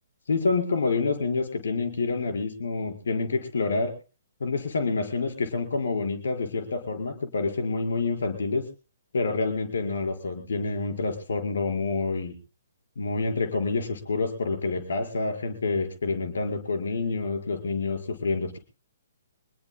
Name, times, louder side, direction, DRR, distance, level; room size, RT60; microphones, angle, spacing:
voice 1, 0.3-3.9 4.4-8.6 9.1-12.4 13.0-18.6, left 3 dB, 65° left, 5 dB, 5.1 m, -27 dB
26.0 x 21.0 x 2.3 m, 0.35 s
figure-of-eight pair, 125°, 0 cm